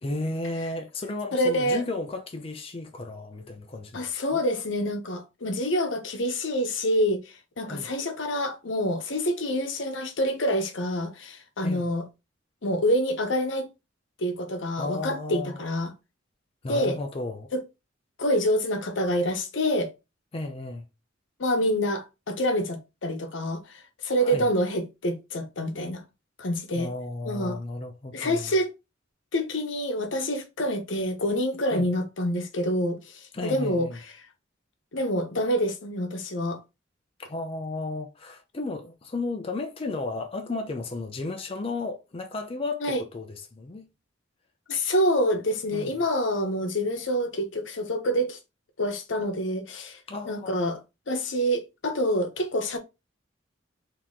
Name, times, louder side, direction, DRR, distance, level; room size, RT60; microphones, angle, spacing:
voice 1, 0.0-4.1 4.3-4.4 7.6-7.9 11.6-11.9 14.8-15.6 16.6-17.5 20.3-20.8 24.2-24.5 26.7-28.6 31.7-31.9 33.3-34.0 37.2-43.9 45.7-45.9 50.1-50.6, left 2 dB, 30° left, 0.5 m, -34 dB
voice 2, 1.3-1.8 3.9-7.2 7.6-12.0 12.6-13.7 14.2-15.9 16.7-17.0 17.5-17.6 18.2-19.9 21.4-26.0 26.4-26.9 27.2-27.6 28.1-28.7 29.3-34.1 34.9-36.6 42.8-43.0 44.7-48.4 48.8-50.0 50.3-50.8 51.1-52.8, equal, 75° left, 0.9 m, -27 dB
4.0 x 2.9 x 3.6 m
head